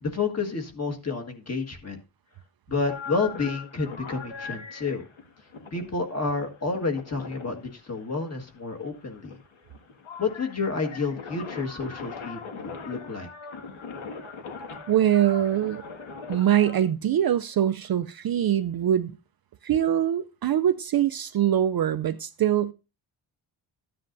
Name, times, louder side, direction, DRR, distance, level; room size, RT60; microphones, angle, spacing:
voice 1, 0.0-2.0 2.7-5.0 5.7-9.3 10.2-13.3, left 4 dB, 30° left, 1.6 m, -30 dB
sound 1, 2.9-16.8, left 5 dB, 70° left, 2.0 m, -41 dB
voice 2, 14.9-15.8 16.3-19.1 19.6-22.7, right 10 dB, 50° right, 0.5 m, -23 dB
14.0 x 9.6 x 2.6 m
wide cardioid pair, 155°, 49 cm